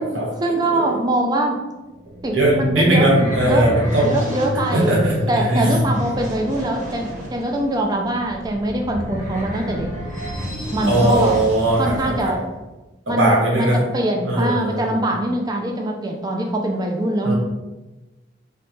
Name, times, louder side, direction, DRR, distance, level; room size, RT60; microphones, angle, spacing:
voice 1, 0.4-1.6 2.2-3.7 4.0-5.0 5.3-9.9 10.7-11.3 11.8-12.4 13.1-17.3, right 1 dB, 20° right, 2 dB, 0.3 m, -23 dB
sound 1, 1.8-12.4, left 1 dB, 40° right, 0.8 m, -28 dB
voice 2, 2.3-4.2 4.7-5.7 10.9-12.1 13.1-13.8 14.2-15.0 17.2-17.3, right 1 dB, 85° right, -4 dB, 1.0 m, -19 dB
2.9 x 2.1 x 3.0 m, 1.1 s
head